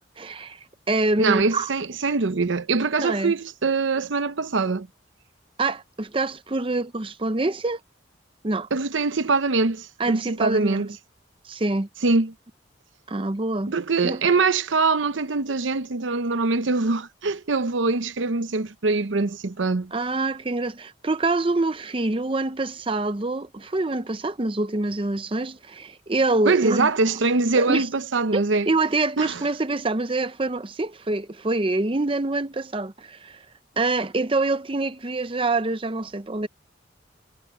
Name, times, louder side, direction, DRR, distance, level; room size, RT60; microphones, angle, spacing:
voice 1, 0.2-0.6 0.9-1.7 3.0-3.3 5.6-7.8 8.4-8.7 10.0-10.9 11.4-11.9 13.1-13.7 14.0-14.2 19.9-26.9 27.6-27.9 28.3-33.4 33.8-36.5, right 2 dB, 30° right, 0.7 m, -25 dB
voice 2, 1.2-4.9 8.7-10.9 12.0-12.3 13.7-19.9 26.5-28.7 29.2-29.4, right 3 dB, 75° right, 0.8 m, -23 dB
head